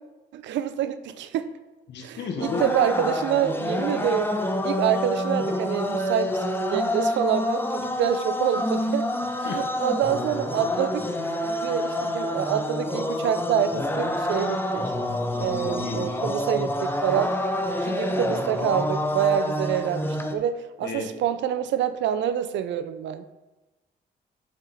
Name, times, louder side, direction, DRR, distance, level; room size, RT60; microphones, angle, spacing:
voice 1, 0.3-1.5 2.0-4.3 4.6-9.1 9.4-11.1 11.4-14.8 15.4-17.4 17.8-23.3, right 10 dB, 80° right, 12 dB, 0.6 m, -27 dB
voice 2, 1.9-2.6 9.4-9.6 15.6-16.2 20.8-21.1, left 4 dB, 70° left, 2 dB, 1.6 m, -32 dB
sound 1, 2.4-20.3, left 1 dB, 10° left, 0.9 m, -27 dB
7.6 x 6.9 x 4.2 m, 1.1 s
cardioid pair, 75°, 19 cm